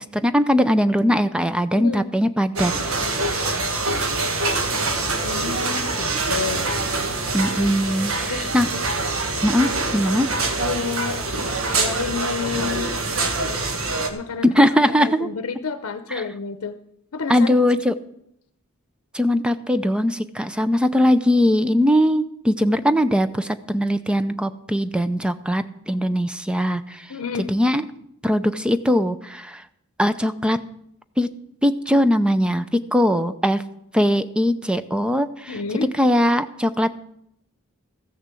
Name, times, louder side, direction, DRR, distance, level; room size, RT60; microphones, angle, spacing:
voice 1, 0.1-2.7 3.1-3.2 7.3-8.7 9.4-10.3 14.4-15.3 16.1-16.2 17.3-17.9 19.1-27.1 27.5-27.8 28.2-29.6 30.0-30.6 31.2-31.3 31.6-32.7 32.9-33.6 33.9-35.6 36.0-36.9, equal, 5° right, 11 dB, 0.5 m, -20 dB
voice 2, 1.7-2.1 5.2-6.7 8.2-8.5 10.6-11.2 11.8-12.9 14.1-16.8 17.1-17.6 27.1-27.7 35.5-35.9, left 5 dB, 80° left, 9 dB, 0.7 m, -30 dB
sound 1, 2.6-14.1, right 3 dB, 75° right, 1.4 m, -25 dB
14.5 x 6.6 x 7.5 m, 0.75 s
head